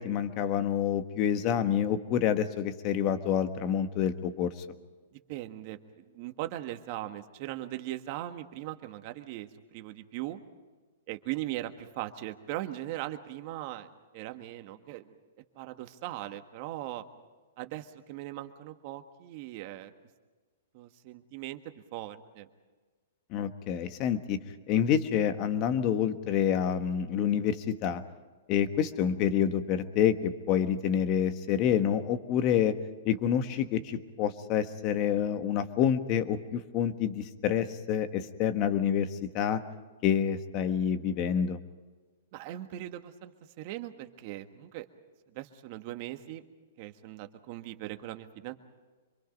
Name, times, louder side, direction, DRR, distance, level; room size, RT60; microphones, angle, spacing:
voice 1, 0.0-4.5 23.3-24.4 24.7-28.0 28.5-32.7 33.0-39.1 39.3-39.6 40.0-41.6, left 9 dB, 35° left, 9 dB, 1.3 m, -27 dB
voice 2, 5.1-9.5 9.7-10.4 11.1-13.9 14.1-15.1 15.5-17.0 17.6-19.9 20.7-21.6 21.9-22.5 42.3-44.9 45.3-46.4 46.8-48.5, right 14 dB, 40° right, 7 dB, 1.5 m, -39 dB
26.0 x 23.5 x 5.3 m, 1.4 s
hypercardioid pair, 150°, 0 cm